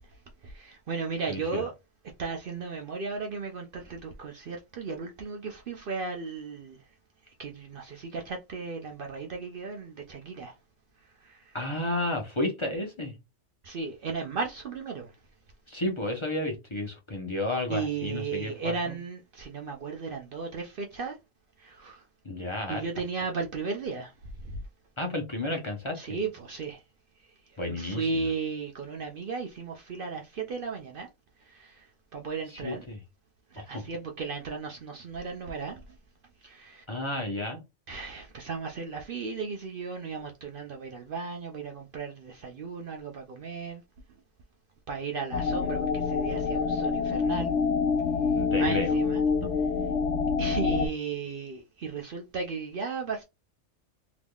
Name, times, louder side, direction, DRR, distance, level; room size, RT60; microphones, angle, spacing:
voice 1, 0.4-1.7 2.2-6.8 7.4-10.5 11.2-11.6 13.6-15.1 17.7-21.2 21.6-22.0 22.7-24.1 24.4-24.6 25.9-26.8 27.7-31.1 31.4-32.8 33.5-35.8 36.4-36.8 37.9-43.8 44.9-47.6 48.6-49.2 50.4-53.2, right 4 dB, 55° right, 0.7 m, -35 dB
voice 2, 1.3-1.6 11.5-13.1 15.7-19.0 22.2-22.8 25.0-26.2 27.6-28.3 32.5-33.0 33.6-33.8 36.9-37.6 48.3-48.9, left 1 dB, 25° left, 0.8 m, -32 dB
sound 1, 45.3-50.9, left 5 dB, 65° left, 1.0 m, -26 dB
3.5 x 3.0 x 2.3 m
omnidirectional pair, 1.3 m